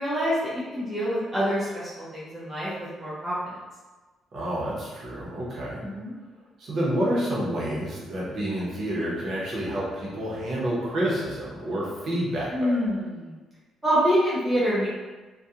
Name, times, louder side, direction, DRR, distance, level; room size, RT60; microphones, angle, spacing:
voice 1, 0.0-3.6 5.8-6.1 12.5-13.4 13.8-14.9, equal, 10° right, -10 dB, 0.4 m, -26 dB
voice 2, 4.3-5.8 6.6-12.8, right 1 dB, 40° right, -6 dB, 0.7 m, -29 dB
2.4 x 2.2 x 2.7 m, 1.3 s
cardioid pair, 175°, 0 cm